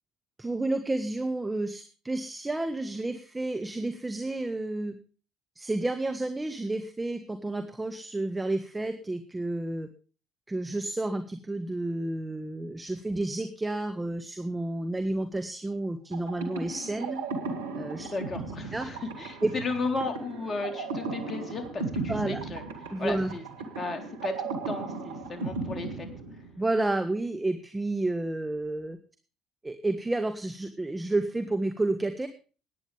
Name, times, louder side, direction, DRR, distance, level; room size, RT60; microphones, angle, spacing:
voice 1, 0.4-5.0 5.5-9.9 10.5-17.2 17.7-18.1 18.7-18.9 19.4-19.5 22.1-22.4 22.9-23.3 26.6-29.0 29.6-32.3, right 2 dB, 15° right, 7 dB, 1.6 m, -30 dB
sound 1, 16.1-26.8, right 3 dB, 85° right, 2.1 m, -36 dB
voice 2, 18.0-22.6 23.0-23.4 23.8-26.1, left 3 dB, 35° left, 5 dB, 3.7 m, -34 dB
19.5 x 9.8 x 3.4 m, 0.37 s
hypercardioid pair, 55°, 0 cm